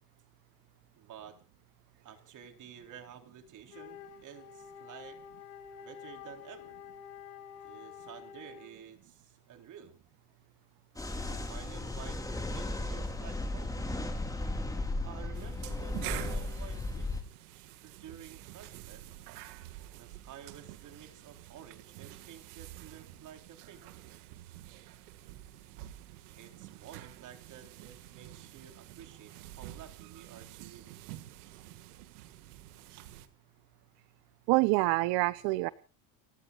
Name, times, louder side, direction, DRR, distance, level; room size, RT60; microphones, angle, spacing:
voice 1, 1.0-1.4 2.0-5.2 5.8-6.8 7.6-10.0 11.1-12.2 12.5-13.9 15.0-17.1 17.5-19.0 19.8-24.1 26.3-30.9, right 9 dB, 40° right, 5 dB, 4.0 m, -51 dB
Wind instrument woodwind instrument, 3.6-8.9, left 8 dB, 85° left, 4.2 m, -49 dB
sound 1, 11.0-17.2, left 2 dB, 10° left, 4.0 m, -35 dB
sound 2, 15.3-33.3, right 15 dB, 80° right, 2.0 m, -48 dB
voice 2, 34.5-35.7, right 22 dB, 60° right, 17 dB, 0.8 m, -26 dB
29.5 x 16.0 x 2.5 m, 0.36 s
supercardioid pair, 120°, 45 cm